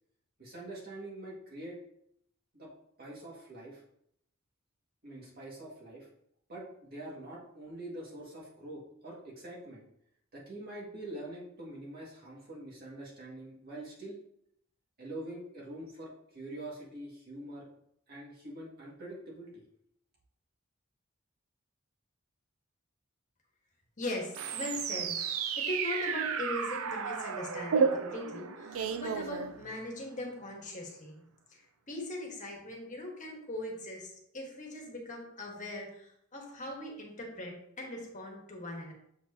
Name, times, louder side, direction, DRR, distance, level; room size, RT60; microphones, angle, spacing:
voice 1, 0.4-1.8 2.5-2.7 3.0-3.8 5.0-6.1 6.5-9.8 10.3-14.2 15.0-17.7 18.1-19.6, right 1 dB, 50° right, -5 dB, 2.1 m, -45 dB
voice 2, 24.0-25.2 25.5-31.2 31.5-31.6 31.9-38.9, left 1 dB, 40° left, 0 dB, 1.5 m, -40 dB
sound 1, 24.3-30.0, right 6 dB, 85° right, 0.5 m, -32 dB
7.3 x 4.5 x 2.8 m, 0.73 s
head